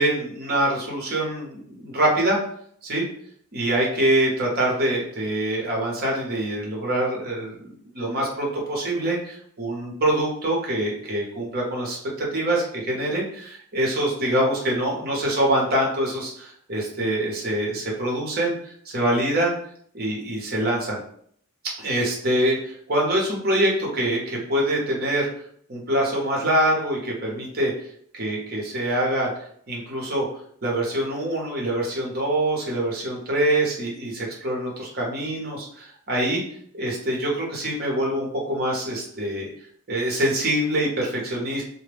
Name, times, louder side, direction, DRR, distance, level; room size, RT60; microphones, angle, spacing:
voice 1, 0.0-2.4 2.8-3.1 3.5-19.5 19.9-21.0 21.8-25.3 25.7-27.7 28.1-29.3 29.7-30.2 30.6-36.4 36.7-39.5 39.9-41.6, right 1 dB, 45° right, -2 dB, 0.9 m, -24 dB
2.2 x 2.1 x 3.3 m, 0.63 s
head